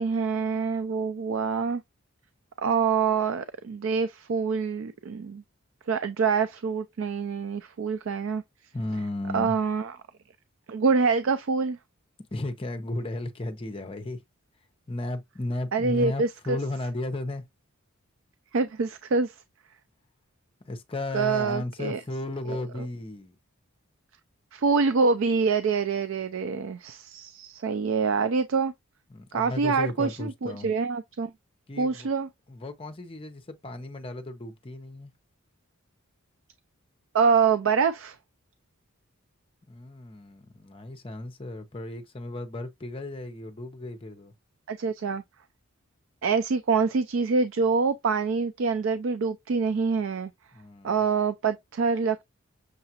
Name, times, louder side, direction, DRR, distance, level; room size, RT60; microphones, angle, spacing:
voice 1, 0.0-1.8 2.6-5.4 5.9-8.4 9.3-9.9 10.7-11.8 15.7-16.6 18.5-19.3 21.1-22.0 22.5-22.9 24.5-28.7 29.3-31.3 31.8-32.3 37.1-38.2 44.7-45.2 46.2-50.3 50.8-52.2, right 5 dB, 60° right, 0.4 m, -25 dB
voice 2, 8.7-9.6 12.3-14.2 14.9-17.4 20.6-23.4 29.1-30.7 31.7-32.1 32.5-35.1 39.7-44.3 50.5-51.0, left 1 dB, 25° left, 0.6 m, -34 dB
6.6 x 2.4 x 2.8 m
head